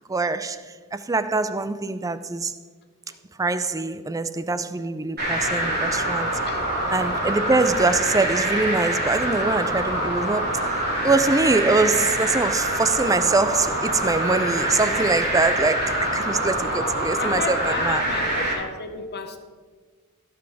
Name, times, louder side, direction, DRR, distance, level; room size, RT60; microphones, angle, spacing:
voice 1, 0.1-0.6 0.9-2.5 3.4-6.3 6.9-10.5 11.0-18.1, right 3 dB, 15° right, 0.4 m, -23 dB
sound 1, 5.2-18.5, right 1 dB, 45° right, 3.4 m, -25 dB
voice 2, 17.1-19.4, left 4 dB, 45° left, 1.0 m, -32 dB
16.5 x 6.1 x 4.8 m
head